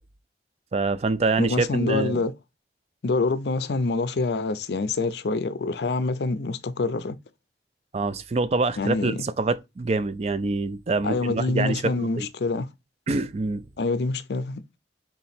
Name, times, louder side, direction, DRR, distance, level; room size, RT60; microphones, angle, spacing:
voice 1, 0.7-2.2 7.9-12.3 13.1-13.7, right 3 dB, 35° right, 0.3 m, -25 dB
voice 2, 1.4-2.3 3.0-7.2 8.8-9.2 11.0-12.7 13.8-14.6, left 3 dB, 65° left, 0.5 m, -26 dB
3.6 x 2.9 x 4.2 m
head